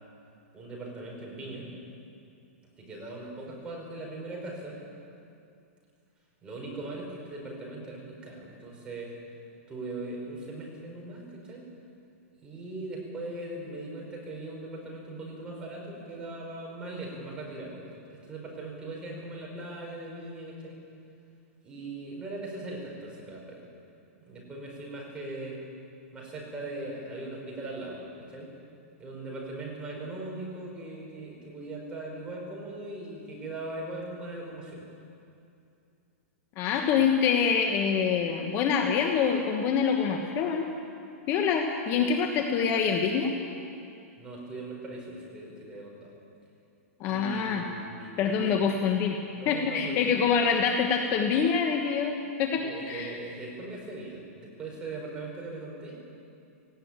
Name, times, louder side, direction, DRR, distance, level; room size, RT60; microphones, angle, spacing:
voice 1, 0.5-1.7 2.8-4.8 6.4-9.1 9.7-11.7 12.4-20.8 21.6-23.6 24.2-25.6 26.1-28.5 29.0-34.8 44.2-46.1 47.0-48.5 49.4-50.1 52.5-56.0, right 2 dB, 10° right, -2 dB, 5.2 m, -40 dB
voice 2, 36.6-40.7 41.3-43.3 47.0-47.6 48.2-49.2 49.5-53.2, left 6 dB, 30° left, 3 dB, 1.3 m, -25 dB
18.0 x 16.5 x 9.0 m, 2.6 s
hypercardioid pair, 160°, 8 cm